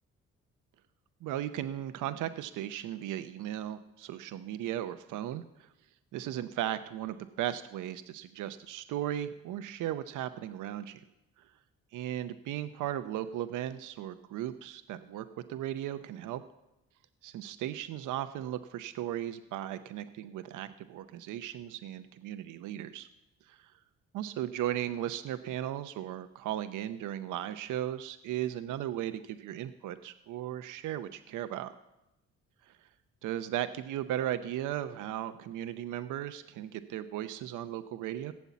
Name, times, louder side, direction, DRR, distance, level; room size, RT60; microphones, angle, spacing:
voice 1, 1.2-5.4 6.1-11.0 11.9-16.4 17.2-23.1 24.1-31.7 32.7-32.8 33.2-38.3, right 12 dB, 85° right, 10 dB, 0.7 m, -36 dB
16.5 x 7.1 x 8.2 m, 0.94 s
cardioid pair, 90°, 30 cm